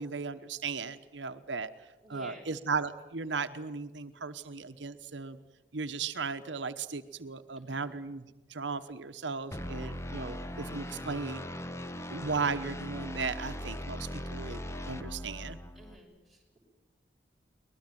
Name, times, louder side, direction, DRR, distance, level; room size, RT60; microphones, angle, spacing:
voice 1, 0.0-1.7 2.1-5.4 5.7-11.4 12.1-14.6 14.9-15.6, right 4 dB, 80° right, 9 dB, 1.0 m, -36 dB
voice 2, 2.0-2.5 7.6-7.9 15.7-16.6, equal, ahead, 1 dB, 6.3 m, -52 dB
sound 1, 9.5-16.0, left 1 dB, 15° left, 1.1 m, -40 dB
23.0 x 20.5 x 9.2 m, 1.1 s
head